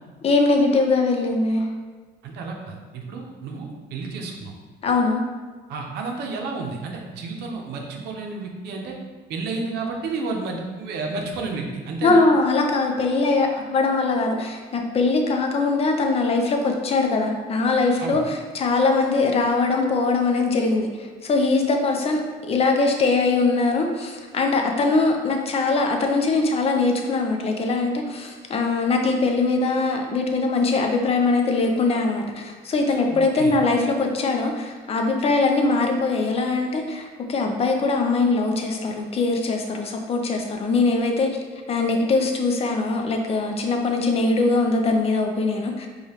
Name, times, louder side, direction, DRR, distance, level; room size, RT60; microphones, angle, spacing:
voice 1, 0.2-1.6 4.8-5.2 12.0-20.9 21.2-22.2 22.5-41.3 41.7-45.9, left 3 dB, 35° left, 3 dB, 0.5 m, -21 dB
voice 2, 2.2-4.5 5.7-9.0 9.3-12.2 18.0-18.2 32.9-33.6, right 3 dB, 75° right, 1 dB, 0.7 m, -31 dB
4.8 x 2.4 x 2.8 m, 1.4 s
cardioid pair, 110°, 17 cm